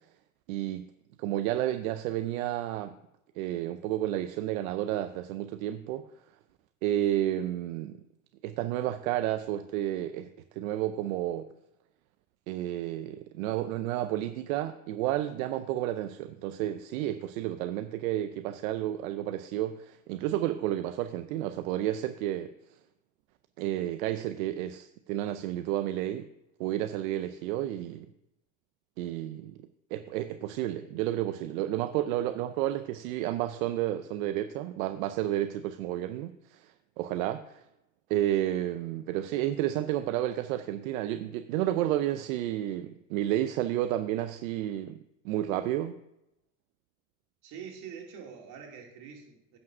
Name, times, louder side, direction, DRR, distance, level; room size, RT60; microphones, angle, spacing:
voice 1, 0.5-0.8 1.2-2.9 3.4-6.1 6.8-8.0 8.4-11.5 12.5-22.5 23.6-26.3 26.6-28.1 29.0-37.6 38.1-45.0 45.2-46.0, right 13 dB, 90° right, 10 dB, 0.6 m, -31 dB
voice 2, 47.4-49.6, right 7 dB, 70° right, 0 dB, 3.0 m, -45 dB
9.3 x 5.3 x 6.0 m, 0.87 s
supercardioid pair, 85°, 40 cm